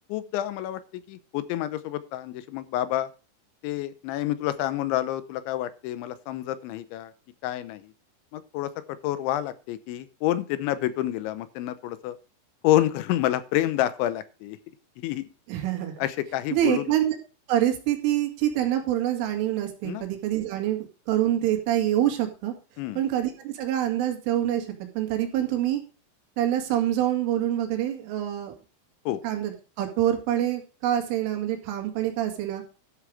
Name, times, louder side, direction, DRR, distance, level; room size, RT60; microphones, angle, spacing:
voice 1, 0.1-3.1 3.6-7.1 7.4-7.9 8.3-8.7 9.0-12.2 12.6-14.6 15.0-15.3 16.0-16.9 19.8-20.0 22.8-23.0 29.1-29.2, left 13 dB, 80° left, 14 dB, 3.0 m, -28 dB
voice 2, 15.5-16.0 16.5-17.2 17.5-22.5 23.0-24.7 25.0-25.8 26.4-28.5 29.2-29.5 29.8-32.6, right 12 dB, 85° right, 4 dB, 4.5 m, -26 dB
12.5 x 6.7 x 4.9 m, 0.34 s
omnidirectional pair, 5.5 m